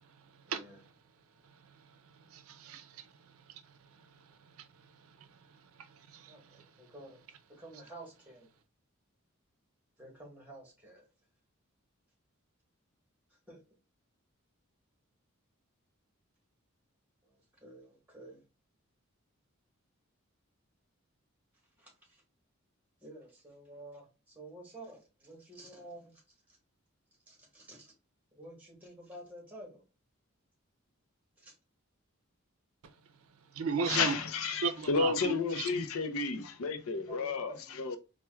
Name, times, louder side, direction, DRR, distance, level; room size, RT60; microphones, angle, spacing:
voice 1, 0.5-0.8 6.3-7.2 7.5-8.5 10.0-11.1 13.5-13.6 17.2-18.4 21.8-22.2 23.0-26.2 26.5-26.6 27.3-27.9 28.3-29.8 31.4-31.5 37.1-37.8, right 1 dB, 10° right, 1.1 m, -51 dB
voice 2, 2.3-3.0 6.1-6.3 33.5-34.1 34.6-35.3, right 5 dB, 80° right, 0.5 m, -34 dB
voice 3, 33.8-38.0, left 4 dB, 80° left, 0.5 m, -32 dB
4.3 x 2.2 x 2.2 m
head